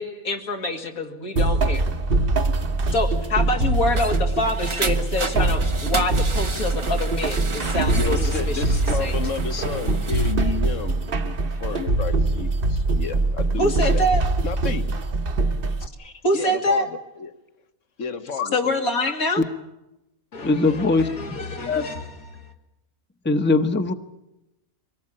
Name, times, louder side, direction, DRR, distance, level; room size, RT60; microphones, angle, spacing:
voice 1, 0.0-1.9 2.9-8.6 9.0-9.2 13.6-14.2 16.0-16.9 18.5-19.4 20.3-22.4, left 1 dB, 85° left, 3 dB, 2.7 m, -26 dB
sound 1, 1.4-15.9, right 2 dB, 45° right, 1.2 m, -23 dB
sound 2, 3.6-10.4, right 3 dB, 25° right, 0.7 m, -33 dB
voice 2, 7.9-14.0 14.4-14.9 16.3-17.3 18.0-18.7, left 5 dB, 60° left, 9 dB, 1.7 m, -32 dB
voice 3, 20.4-21.1 21.7-21.8 23.2-23.9, left 3 dB, 10° left, 7 dB, 0.9 m, -20 dB
24.5 x 18.5 x 8.8 m, 0.93 s
omnidirectional pair, 1.5 m